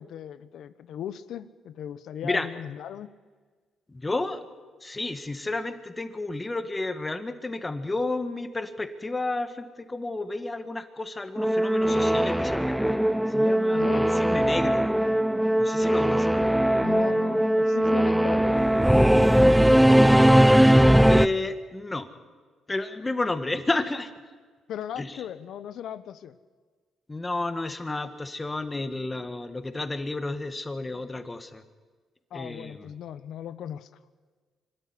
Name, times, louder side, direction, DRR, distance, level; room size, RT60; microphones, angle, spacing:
voice 1, 0.0-3.1 13.7-14.1 16.4-16.5 16.8-19.2 24.7-26.4 32.3-33.9, left 10 dB, 75° left, 14 dB, 1.1 m, -38 dB
voice 2, 3.9-4.4 4.8-13.0 13.3-14.9 15.6-16.3 21.1-22.1 22.7-24.1 25.0-25.1 27.1-31.6 32.3-32.9, left 2 dB, 20° left, 9 dB, 1.9 m, -31 dB
Singing / Musical instrument, 11.4-21.3, equal, ahead, 0.6 m, -20 dB
25.5 x 13.0 x 9.9 m, 1.4 s
cardioid pair, 90°, 0 cm